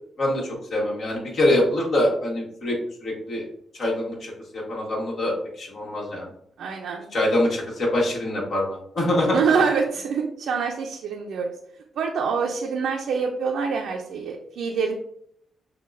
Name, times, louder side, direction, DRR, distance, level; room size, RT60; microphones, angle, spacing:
voice 1, 0.2-2.8 3.0-3.4 3.8-6.3 7.1-9.4, left 1 dB, 60° left, -3 dB, 1.4 m, -24 dB
voice 2, 6.6-7.1 9.3-11.5 12.0-14.9, right 5 dB, 80° right, 1 dB, 0.4 m, -25 dB
5.7 x 2.2 x 2.5 m, 0.71 s
cardioid pair, 100°, 0 cm